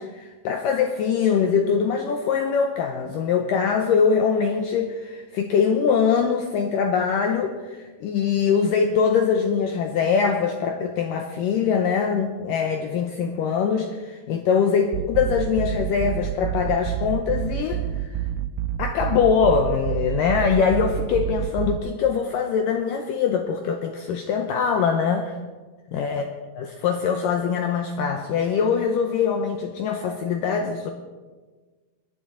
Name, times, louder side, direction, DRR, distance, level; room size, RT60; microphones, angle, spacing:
voice 1, 0.0-18.2 18.8-25.3 25.9-26.2 26.6-30.9, left 6 dB, 90° left, 5 dB, 1.9 m, -23 dB
sound 1, 14.9-21.8, right 11 dB, 85° right, 2.1 m, -28 dB
20.5 x 11.5 x 3.8 m, 1.4 s
omnidirectional pair, 4.8 m